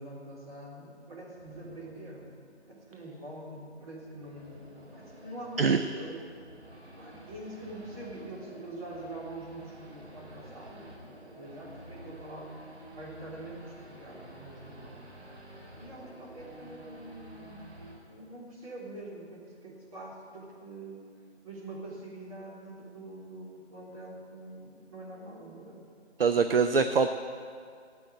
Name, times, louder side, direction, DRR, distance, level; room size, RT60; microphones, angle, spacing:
voice 1, 0.0-6.3 7.0-12.6 12.9-15.1 15.7-21.1 21.4-25.8, right 1 dB, 30° right, -6 dB, 3.8 m, -44 dB
Race car auto racing / Idling / Accelerating revving vroom, 1.4-18.0, right 1 dB, 75° right, 4.1 m, -50 dB
voice 2, 26.2-27.1, right 5 dB, 55° right, 8 dB, 0.6 m, -23 dB
15.0 x 8.3 x 9.1 m, 2.2 s
figure-of-eight pair, 160°, 35 cm